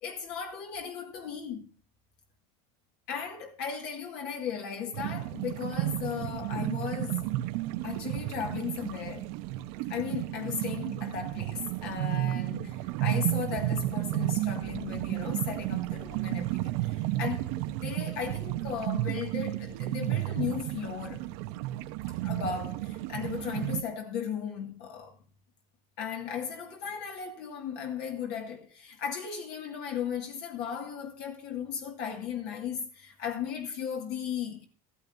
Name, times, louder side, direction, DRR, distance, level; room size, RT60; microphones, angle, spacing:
voice 1, 0.0-1.7 3.1-7.3 7.8-9.3 9.9-21.2 22.2-25.2 26.0-34.7, left 7 dB, 60° left, 2.0 m, -36 dB
sound 1, 4.9-23.8, right 16 dB, 70° right, 0.8 m, -32 dB
14.5 x 13.5 x 2.7 m
supercardioid pair, 130°, 18 cm